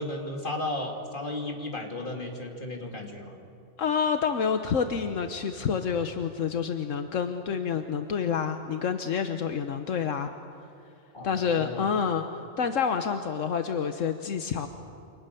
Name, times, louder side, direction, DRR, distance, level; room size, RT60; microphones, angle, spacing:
voice 1, 0.0-3.4 11.1-11.8, left 1 dB, 40° left, 1 dB, 3.4 m, -34 dB
voice 2, 3.8-10.3 11.2-12.2 12.6-14.7, left 6 dB, 80° left, 7 dB, 1.3 m, -28 dB
29.0 x 26.0 x 7.0 m, 2.6 s
omnidirectional pair, 1.3 m